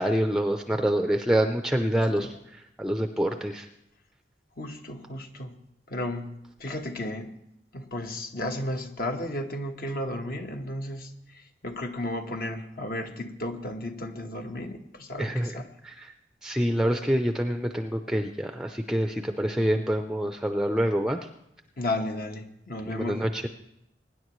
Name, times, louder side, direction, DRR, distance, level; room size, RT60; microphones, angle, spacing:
voice 1, 0.0-3.7 15.2-16.1 16.4-21.2 22.9-23.5, equal, 5° right, 5 dB, 0.5 m, -26 dB
voice 2, 4.6-5.6 5.9-7.3 7.7-11.1 11.6-15.7 21.8-23.2, left 1 dB, 55° left, 4 dB, 1.3 m, -33 dB
23.0 x 10.0 x 3.1 m, 0.82 s
head